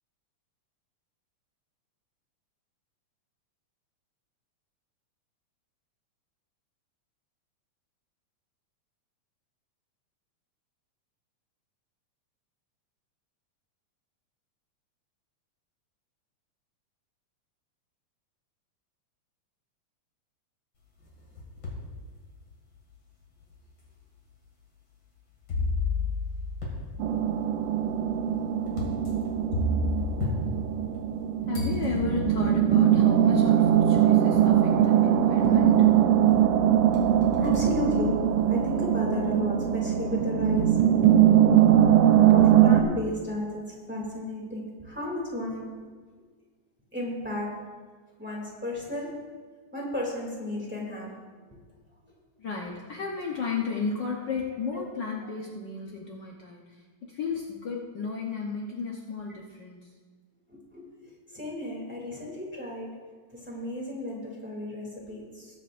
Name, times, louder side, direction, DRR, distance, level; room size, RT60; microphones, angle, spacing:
sound 1, 21.0-21.9 22.5-22.6 23.5-23.6 25.5-31.2 31.5-32.5 33.7-33.8 34.3-34.7 35.1-35.9 36.3-38.7, left 2 dB, 40° left, 2.6 m, -33 dB
sound 2, 27.0-42.8, right 10 dB, 75° right, 1.6 m, -21 dB
voice 1, 31.5-35.9 52.4-56.6 57.0-59.8, left 5 dB, 80° left, -2 dB, 1.0 m, -34 dB
voice 2, 37.4-40.8 42.3-45.8 46.9-47.6 48.2-49.2 49.7-51.2 52.0-52.1 54.7-54.8 60.5-63.0 63.3-65.6, left 1 dB, 5° right, -3 dB, 2.1 m, -33 dB
20.5 x 8.7 x 2.5 m, 1.5 s
omnidirectional pair, 3.4 m